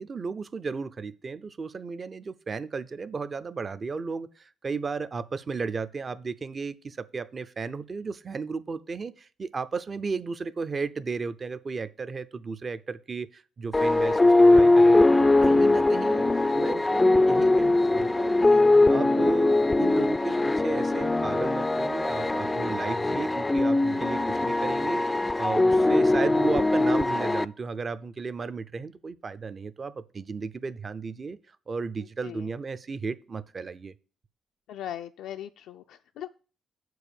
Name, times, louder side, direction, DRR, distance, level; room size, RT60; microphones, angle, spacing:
voice 1, 0.0-16.2 16.5-18.6 18.9-31.4 31.7-33.9, right 4 dB, 40° right, 0.6 m, -34 dB
sound 1, 13.7-27.4, left 2 dB, 15° left, 0.3 m, -21 dB
voice 2, 34.7-36.3, left 11 dB, 85° left, 0.4 m, -39 dB
7.1 x 4.7 x 6.9 m
cardioid pair, 90°, 0 cm